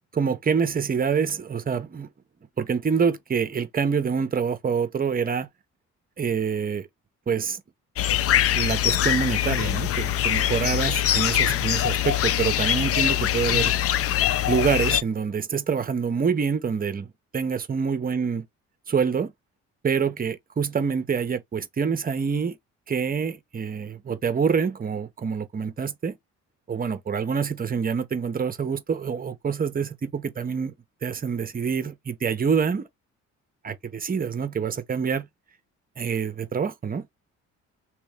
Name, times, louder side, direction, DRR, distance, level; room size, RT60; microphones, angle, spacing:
voice 1, 0.1-2.1 2.6-5.5 6.2-6.9 7.3-7.6 8.5-13.7 14.5-17.1 17.3-18.4 18.9-19.3 19.8-22.6 22.9-26.2 26.7-30.7 31.0-32.9 33.6-35.3 36.0-37.1, right 6 dB, 30° right, 0.7 m, -26 dB
sound 1, 8.0-15.0, left 11 dB, 50° left, 0.4 m, -23 dB
3.0 x 2.9 x 3.5 m
cardioid pair, 90°, 30 cm